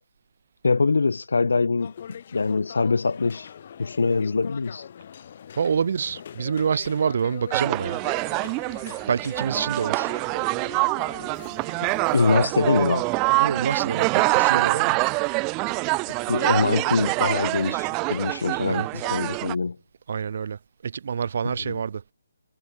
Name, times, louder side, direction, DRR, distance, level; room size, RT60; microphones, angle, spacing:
voice 1, 0.6-1.9 2.3-3.5 3.8-4.9 12.1-13.1 16.3-19.8 21.6-21.8, left 4 dB, 75° left, 2.3 m, -23 dB
sound 1, 1.8-12.3, left 8 dB, 45° left, 3.8 m, -42 dB
voice 2, 5.6-8.0 9.1-10.1 13.4-15.0 18.6-19.0 20.1-20.6 20.8-22.0, right 6 dB, 50° right, 4.9 m, -27 dB
sound 2, 7.5-19.6, right 29 dB, 20° right, 0.6 m, -25 dB
figure-of-eight pair, 155°, 0 cm